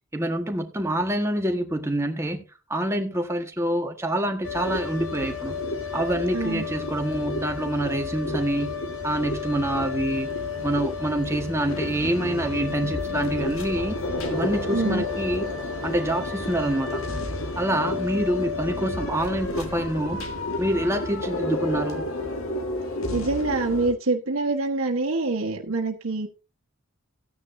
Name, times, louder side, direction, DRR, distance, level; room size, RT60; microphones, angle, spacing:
voice 1, 0.1-2.4 2.7-5.6 5.9-8.8 9.0-10.3 10.6-14.0 14.3-15.5 15.8-17.0 17.6-20.2 20.6-22.0, right 1 dB, 15° right, 1.5 m, -26 dB
sound 1, 4.4-23.9, left 3 dB, 80° left, 1.9 m, -30 dB
voice 2, 6.3-6.6 14.7-15.0 23.1-26.3, right 3 dB, 85° right, 1.4 m, -25 dB
15.0 x 9.7 x 2.7 m
head